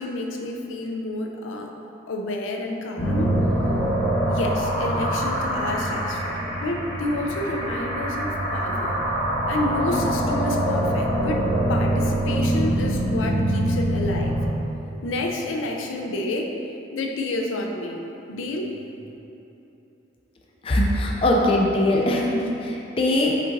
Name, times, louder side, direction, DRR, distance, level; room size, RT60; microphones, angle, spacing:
voice 1, 0.0-1.7 2.1-3.3 4.3-9.0 9.5-14.5 15.0-16.5 16.9-18.0 18.3-18.7, left 2 dB, 90° left, 2 dB, 0.4 m, -29 dB
sound 1, 3.0-14.5, right 1 dB, 45° left, 1.2 m, -24 dB
voice 2, 20.6-23.5, left 1 dB, 30° left, -2 dB, 0.3 m, -21 dB
5.3 x 3.9 x 2.6 m, 2.9 s
head